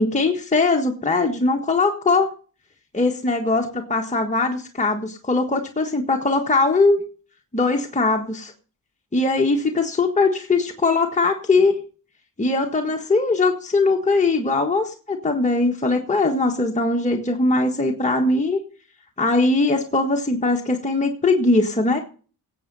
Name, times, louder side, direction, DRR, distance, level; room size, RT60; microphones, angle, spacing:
voice 1, 0.0-2.3 2.9-7.0 7.5-8.5 9.1-11.8 12.4-18.6 19.2-22.0, left 3 dB, 20° left, 2 dB, 1.5 m, -20 dB
17.5 x 7.8 x 5.4 m, 0.40 s
cardioid pair, 100°, 40 cm